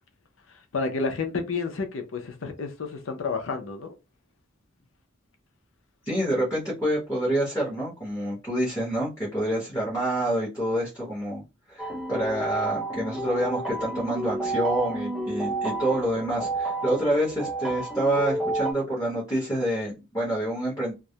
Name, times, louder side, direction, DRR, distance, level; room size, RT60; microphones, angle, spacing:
voice 1, 0.7-4.0, left 4 dB, 85° left, 0.5 m, -30 dB
voice 2, 6.1-11.4 11.7-20.9, right 1 dB, 15° left, 0.9 m, -27 dB
sound 1, 11.8-18.7, right 2 dB, ahead, 0.4 m, -30 dB
2.3 x 2.0 x 2.7 m
head